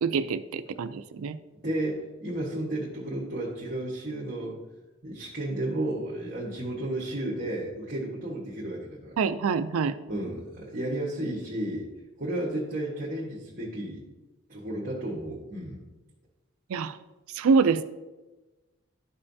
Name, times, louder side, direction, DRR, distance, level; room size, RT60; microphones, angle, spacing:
voice 1, 0.0-1.4 9.2-9.9 16.7-17.0 17.3-17.8, right 5 dB, 90° right, 11 dB, 0.4 m, -25 dB
voice 2, 1.5-4.6 5.0-9.2 10.1-11.9 12.2-14.0 14.5-15.8, right 1 dB, 40° right, -5 dB, 1.3 m, -33 dB
12.0 x 5.5 x 2.7 m, 1.1 s
head